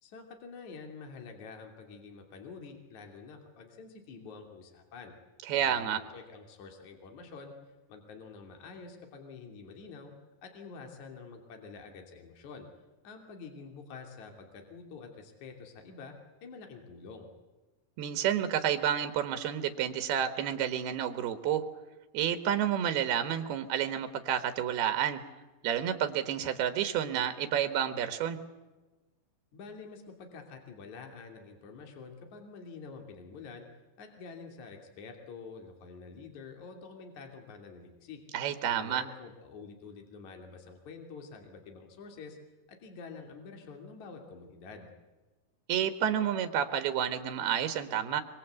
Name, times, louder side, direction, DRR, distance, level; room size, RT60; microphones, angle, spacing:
voice 1, 0.0-5.1 5.6-7.5 7.9-10.1 10.4-12.7 13.0-16.2 16.4-17.3 29.5-33.7 34.0-38.2 38.7-42.4 42.7-44.9, left 4 dB, 50° left, 3 dB, 4.1 m, -47 dB
voice 2, 5.5-6.0 18.0-21.7 22.1-25.2 25.6-28.4 38.3-39.0 45.7-48.2, right 9 dB, 90° right, 9 dB, 3.3 m, -30 dB
24.5 x 24.5 x 8.2 m, 1.2 s
omnidirectional pair, 4.4 m